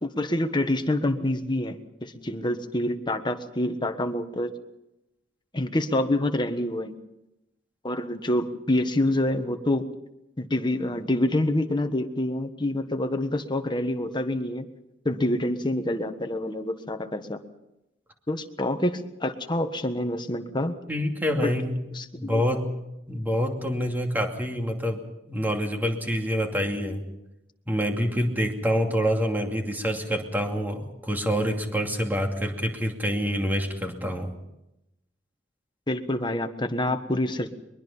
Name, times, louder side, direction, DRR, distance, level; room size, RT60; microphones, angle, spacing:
voice 1, 0.0-4.5 5.5-6.9 7.8-9.9 10.4-14.6 15.0-17.4 18.3-20.7 21.4-21.5 21.9-22.4 35.9-37.5, left 1 dB, 25° left, 7 dB, 1.4 m, -27 dB
voice 2, 20.9-21.8 22.1-22.6 23.1-25.0 25.3-27.1 27.7-34.3, equal, 10° right, 3 dB, 2.6 m, -26 dB
22.5 x 22.0 x 5.6 m, 0.90 s
head